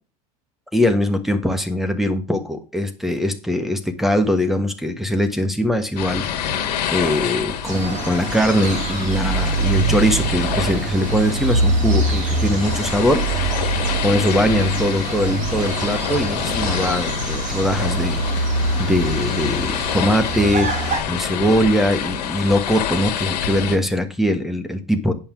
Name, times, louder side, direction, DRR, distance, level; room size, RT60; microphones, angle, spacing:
voice 1, 0.7-6.5 6.9-13.2 14.0-18.2 18.8-20.7 21.1-25.1, equal, ahead, 9 dB, 1.3 m, -21 dB
sound 1, 6.0-23.8, left 9 dB, 85° left, 1.5 m, -27 dB
sound 2, 7.6-21.0, right 2 dB, 40° right, 3.9 m, -24 dB
8.9 x 5.5 x 6.1 m, 0.33 s
supercardioid pair, 110°, 21 cm